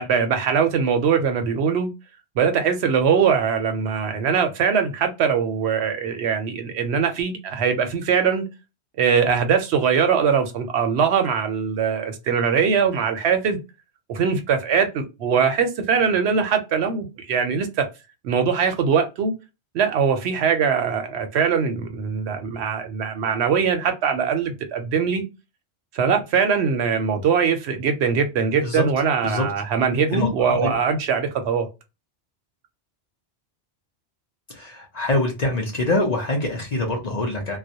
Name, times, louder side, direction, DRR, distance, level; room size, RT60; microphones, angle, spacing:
voice 1, 0.0-1.9 2.4-8.5 9.0-13.6 14.1-17.9 18.2-19.3 19.7-25.2 25.9-31.7, right 6 dB, 75° right, 0.8 m, -21 dB
voice 2, 30.1-30.8 34.5-37.6, left 2 dB, 45° left, 0.6 m, -24 dB
2.3 x 2.0 x 2.6 m
omnidirectional pair, 1.2 m